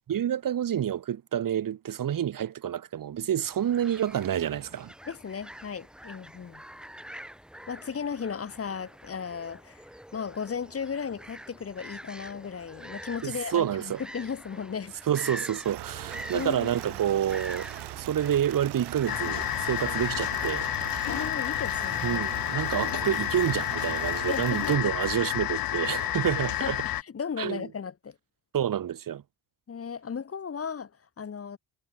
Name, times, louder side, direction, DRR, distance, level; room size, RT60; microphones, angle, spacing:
voice 1, 0.1-4.9 13.2-14.0 15.1-17.7 18.0-20.7 22.0-26.8 27.4-27.7 28.5-29.2, right 10 dB, 55° right, 1.2 m, -28 dB
sound 1, 3.4-21.3, equal, ahead, 2.4 m, -45 dB
voice 2, 5.1-6.6 7.7-9.8 10.1-14.9 16.3-16.7 21.1-22.3 24.3-24.7 26.5-26.7 27.1-28.2 29.7-30.9 31.2-31.6, left 6 dB, 35° left, 1.2 m, -35 dB
sound 2, 15.6-24.8, right 18 dB, 90° right, 0.7 m, -40 dB
sound 3, 19.1-27.0, left 14 dB, 60° left, 0.6 m, -30 dB
cardioid pair, 85°, 40 cm